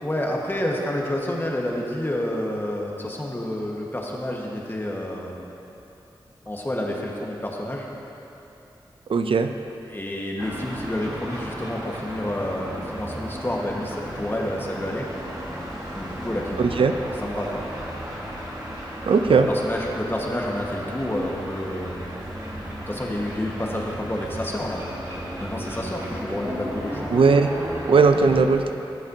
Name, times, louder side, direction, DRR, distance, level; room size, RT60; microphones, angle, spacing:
voice 1, 0.0-5.4 6.4-7.9 9.9-15.1 15.9-16.8 17.2-17.6 19.3-22.0 22.9-24.9 25.4-27.2, left 1 dB, 25° left, -2 dB, 1.5 m, -29 dB
voice 2, 9.1-9.5 16.6-17.0 19.1-19.5 27.1-27.5 27.9-28.7, right 4 dB, 75° right, 7 dB, 0.5 m, -18 dB
sound 1, 10.4-28.5, equal, 40° right, 1.9 m, -35 dB
17.0 x 7.3 x 2.8 m, 2.9 s
cardioid pair, 55°, 9 cm